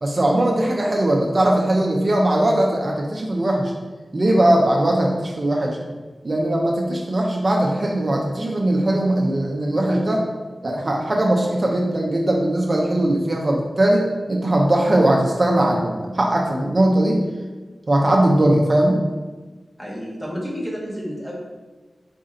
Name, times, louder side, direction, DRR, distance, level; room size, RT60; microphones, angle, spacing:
voice 1, 0.0-3.7 4.1-5.8 6.2-10.3 10.6-17.2 17.9-19.0, right 1 dB, 40° right, 0 dB, 0.5 m, -19 dB
voice 2, 19.8-21.4, equal, 15° left, -4 dB, 1.1 m, -30 dB
4.2 x 2.6 x 3.7 m, 1.3 s
wide cardioid pair, 75°, 0 cm